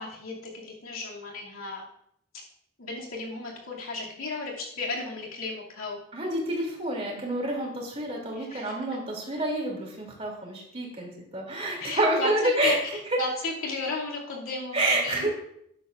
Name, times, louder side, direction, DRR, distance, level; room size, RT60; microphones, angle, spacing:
voice 1, 0.0-1.9 2.8-6.0 8.3-8.8 11.8-15.3, left 2 dB, 90° left, -3 dB, 2.6 m, -34 dB
voice 2, 6.1-12.7 14.7-15.3, right 1 dB, 30° right, -1 dB, 2.8 m, -28 dB
13.0 x 9.9 x 2.5 m, 0.73 s
head